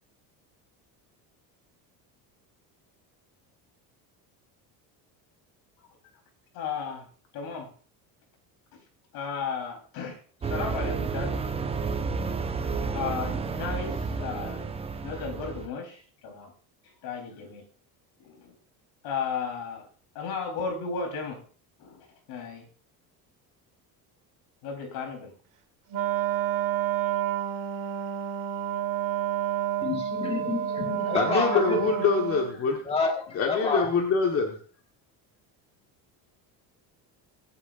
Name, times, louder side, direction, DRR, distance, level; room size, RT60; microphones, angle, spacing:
voice 1, 6.5-7.1 7.3-7.7 9.1-10.2 10.4-11.4 12.9-14.6 15.0-16.5 17.0-17.6 18.2-18.5 19.0-19.8 20.1-21.4 21.8-22.6 24.6-25.3, left 5 dB, 70° left, 3 dB, 4.2 m, -34 dB
sound 1, 10.4-15.7, right 5 dB, 15° right, 0.6 m, -31 dB
Wind instrument woodwind instrument, 25.9-32.5, right 11 dB, 55° right, 1.7 m, -29 dB
voice 2, 29.8-31.8 32.8-33.9, left 3 dB, 15° left, 2 dB, 1.6 m, -29 dB
voice 3, 31.1-32.8 33.3-34.6, left 5 dB, 35° left, 1 dB, 1.5 m, -25 dB
24.0 x 8.9 x 2.6 m, 0.42 s
cardioid pair, 165°, 39 cm